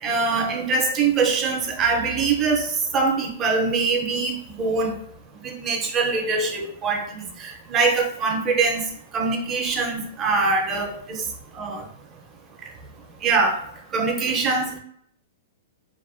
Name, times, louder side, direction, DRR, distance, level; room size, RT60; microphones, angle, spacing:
voice 1, 0.0-4.9 5.4-8.9 9.1-11.2 11.5-11.8 13.2-13.6 13.9-14.8, right 4 dB, 20° right, 2 dB, 0.5 m, -23 dB
2.3 x 2.2 x 2.4 m, 0.65 s
hypercardioid pair, 160°, 0 cm